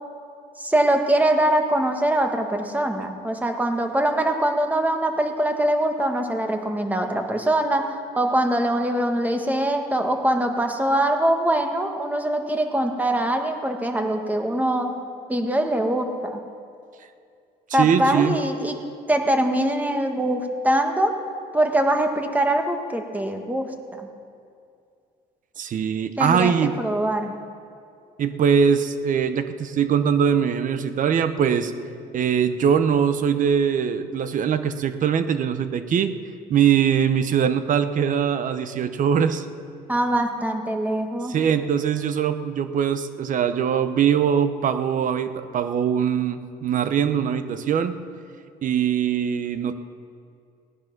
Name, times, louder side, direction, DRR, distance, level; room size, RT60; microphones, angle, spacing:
voice 1, 0.6-7.8 8.1-14.9 15.3-16.4 17.7-18.8 19.1-21.1 21.5-24.1 26.2-27.3 39.9-41.3, right 1 dB, 10° right, 4 dB, 1.6 m, -23 dB
voice 2, 17.7-18.4 25.6-26.7 28.2-31.7 32.1-36.1 36.5-39.4 41.3-47.9 48.6-49.7, right 7 dB, 50° right, 11 dB, 0.9 m, -22 dB
18.0 x 10.0 x 6.0 m, 2.4 s
cardioid pair, 110°, 17 cm